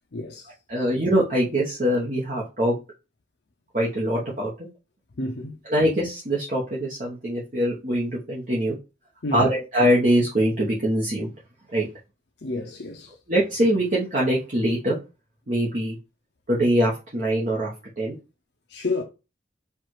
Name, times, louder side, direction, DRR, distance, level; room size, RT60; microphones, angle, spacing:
voice 1, 0.1-0.5 5.2-5.6 9.2-9.4 12.4-13.2 18.7-19.0, left 2 dB, 65° left, 0.6 m, -30 dB
voice 2, 0.7-2.8 3.7-4.7 5.7-8.8 9.3-11.3 11.7-11.9 13.3-15.0 15.5-16.0 16.5-17.7 18.0-18.2, equal, 40° right, 1.0 m, -23 dB
4.6 x 2.5 x 4.7 m
head